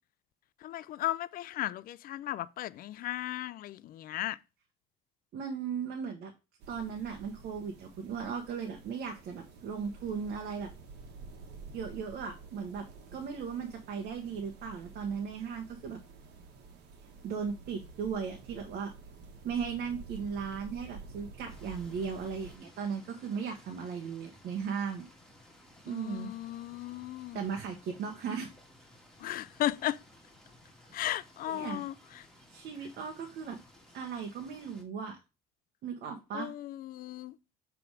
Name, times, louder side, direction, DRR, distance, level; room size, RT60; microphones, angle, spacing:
voice 1, 0.6-4.4 25.9-27.4 29.2-30.0 30.9-32.2 36.3-37.4, left 13 dB, 60° left, 0.4 m, -36 dB
voice 2, 5.3-6.3 6.7-10.7 11.7-12.9 13.1-16.0 17.2-18.9 19.4-25.1 25.8-26.3 27.3-28.5 31.0-31.8 32.5-33.6 33.9-35.2 35.8-36.5, right 6 dB, 70° right, 1.2 m, -37 dB
sound 1, 6.6-22.6, right 4 dB, 85° right, 1.4 m, -50 dB
sound 2, 21.5-34.8, left 1 dB, 5° left, 2.1 m, -58 dB
7.0 x 3.5 x 4.7 m
cardioid pair, 110°, 17 cm